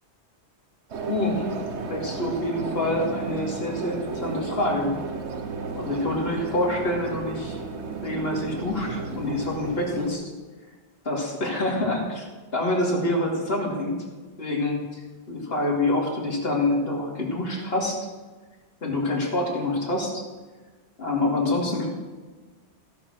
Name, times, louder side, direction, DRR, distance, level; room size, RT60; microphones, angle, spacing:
sound 1, 0.9-10.1, right 4 dB, 75° right, 1.3 m, -33 dB
voice 1, 1.1-1.4 1.9-4.9 5.8-7.6 8.0-10.2 11.0-12.2 12.5-14.0 14.4-15.0 15.3-18.0 18.8-20.2 21.0-21.9, left 2 dB, 60° left, -2 dB, 2.9 m, -26 dB
16.5 x 5.9 x 6.4 m, 1.3 s
omnidirectional pair, 1.2 m